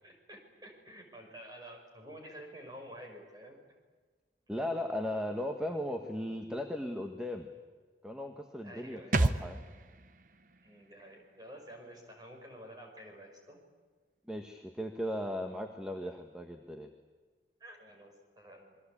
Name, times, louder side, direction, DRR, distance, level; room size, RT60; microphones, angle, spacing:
voice 1, 0.0-3.6 8.6-9.6 10.6-13.6 16.0-16.2 17.6-18.8, equal, 20° right, 2 dB, 5.7 m, -50 dB
voice 2, 4.5-7.5 8.0-9.6 14.3-16.9, left 1 dB, 5° right, 4 dB, 1.4 m, -37 dB
sound 1, 9.1-12.6 12.9-13.0, right 2 dB, 45° right, 0.9 m, -35 dB
27.0 x 22.5 x 8.5 m, 1.4 s
head